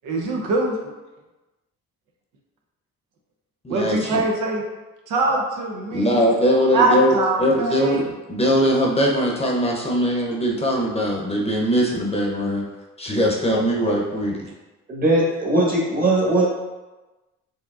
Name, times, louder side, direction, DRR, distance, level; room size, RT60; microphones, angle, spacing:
voice 1, 0.0-0.8 3.7-4.6 5.1-6.2 6.7-8.1 13.5-13.6, right 2 dB, 90° right, 1 dB, 0.7 m, -23 dB
voice 2, 3.6-4.2 5.9-7.1 7.4-12.6 13.0-14.4, equal, 20° left, -2 dB, 0.7 m, -21 dB
voice 3, 14.9-16.5, right 1 dB, 30° right, -4 dB, 1.2 m, -19 dB
4.7 x 2.8 x 2.4 m, 1.1 s
cardioid pair, 90°, 30 cm